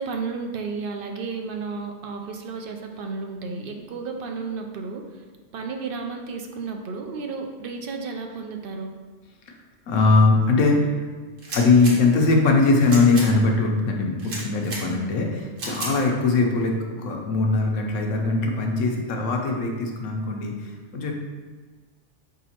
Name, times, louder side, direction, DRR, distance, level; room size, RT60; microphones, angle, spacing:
voice 1, 0.0-5.2 5.5-8.9 14.9-15.1, right 4 dB, 60° right, 3 dB, 0.6 m, -32 dB
voice 2, 9.9-11.0 11.5-21.1, left 3 dB, 90° left, 1 dB, 1.1 m, -21 dB
sound 1, 11.4-11.9 12.8-13.3 14.2-14.8 15.6-15.9, right 2 dB, 90° right, 1.5 m, -33 dB
5.0 x 3.7 x 2.8 m, 1.4 s
omnidirectional pair, 1.3 m